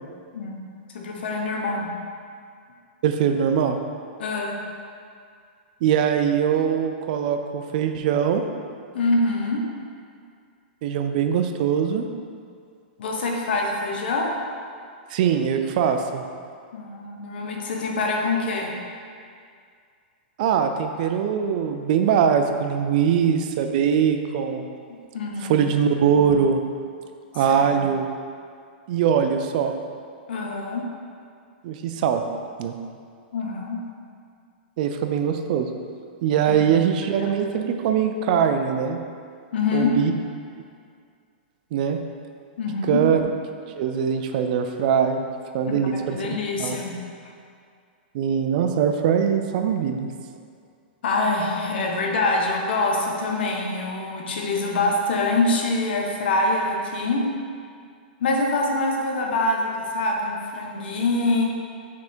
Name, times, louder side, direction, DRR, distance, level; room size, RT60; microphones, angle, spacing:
voice 1, 0.3-0.6 0.9-1.9 4.2-4.6 8.9-9.6 13.0-14.3 16.7-18.8 25.1-25.7 27.6-27.8 30.3-30.9 33.3-33.8 36.5-36.8 37.2-37.3 39.5-39.9 42.6-43.1 45.7-45.8 46.1-47.0 51.0-57.3 58.2-61.4, left 2 dB, 70° left, 0 dB, 1.0 m, -25 dB
voice 2, 3.0-3.8 5.8-8.4 10.8-12.1 15.1-16.2 20.4-24.7 25.4-26.6 27.3-28.1 28.9-29.7 31.6-32.2 32.6-32.7 34.8-35.7 36.2-39.0 39.7-40.1 41.7-42.0 42.9-43.3 43.8-45.2 45.5-46.2 46.6-46.8 48.1-50.1, right 7 dB, 50° right, 6 dB, 0.5 m, -22 dB
6.2 x 3.6 x 4.4 m, 2.2 s
hypercardioid pair, 145°, 6 cm